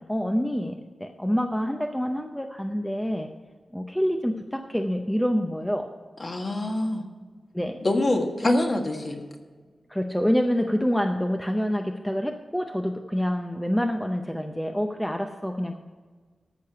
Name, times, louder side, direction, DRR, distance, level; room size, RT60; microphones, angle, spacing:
voice 1, 0.0-3.3 3.7-5.9 7.5-7.8 9.9-15.8, equal, 5° left, 4 dB, 0.6 m, -27 dB
voice 2, 6.2-7.0 7.8-9.2, left 1 dB, 35° left, 3 dB, 1.5 m, -25 dB
14.0 x 6.6 x 5.7 m, 1.5 s
wide cardioid pair, 145°, 0 cm